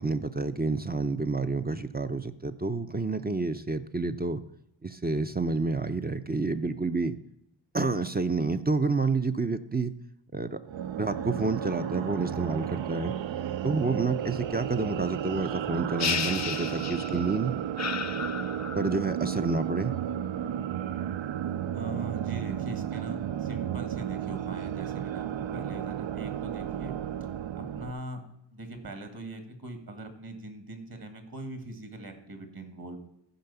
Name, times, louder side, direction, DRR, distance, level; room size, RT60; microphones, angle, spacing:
voice 1, 0.0-4.4 4.8-7.2 7.7-9.9 10.3-10.6 11.0-13.2 13.6-17.6 18.7-20.0, right 3 dB, 20° right, 9 dB, 0.5 m, -29 dB
sound 1, 10.6-27.9, right 10 dB, 70° right, 0.6 m, -33 dB
sound 2, 16.0-17.3 17.8-19.0, left 6 dB, 35° left, 0.6 m, -33 dB
voice 2, 21.7-26.9 27.6-28.2 28.5-33.0, right 2 dB, 50° right, 7 dB, 1.8 m, -41 dB
14.5 x 4.8 x 6.9 m, 0.78 s
wide cardioid pair, 95°, 46 cm